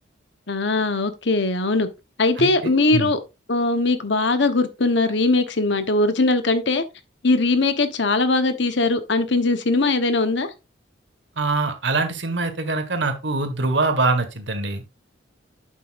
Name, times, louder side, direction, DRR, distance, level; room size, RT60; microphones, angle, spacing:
voice 1, 0.5-1.9 2.2-3.2 3.5-6.8 7.2-10.5, left 3 dB, 65° left, 1.1 m, -20 dB
voice 2, 2.4-3.1 11.4-14.8, right 3 dB, 65° right, 1.6 m, -24 dB
8.5 x 7.6 x 2.5 m
head